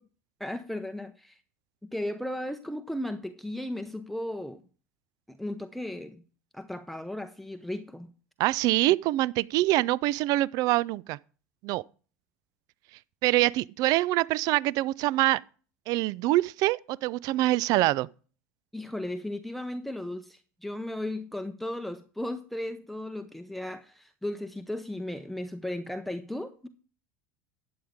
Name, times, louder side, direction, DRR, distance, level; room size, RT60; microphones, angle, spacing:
voice 1, 0.4-1.4 1.8-4.6 5.3-6.2 6.5-8.1 18.7-26.7, left 1 dB, ahead, 0.7 m, -35 dB
voice 2, 8.4-11.2 11.6-11.8 13.2-15.4 15.9-18.1, right 17 dB, 50° right, 0.4 m, -25 dB
12.0 x 8.7 x 3.6 m
hypercardioid pair, 75°, 8 cm